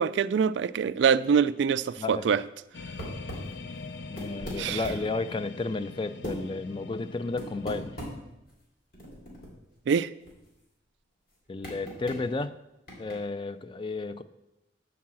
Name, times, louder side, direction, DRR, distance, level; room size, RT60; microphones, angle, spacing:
voice 1, 0.0-2.4 4.6-4.8 9.9-10.1, right 6 dB, 70° right, 0.3 m, -24 dB
sound 1, 2.7-8.0, left 4 dB, 70° left, 0.6 m, -42 dB
sound 2, 3.0-3.5 4.1-5.1 6.2-6.4 7.4-8.1 8.5-8.6 8.9-9.7 10.0-10.1 10.3-10.5 11.6-12.2 12.9-13.2, equal, 55° left, 3.1 m, -38 dB
voice 2, 4.1-8.0 11.5-12.5 13.0-14.2, left 3 dB, 25° left, 0.4 m, -32 dB
9.5 x 4.7 x 7.4 m
head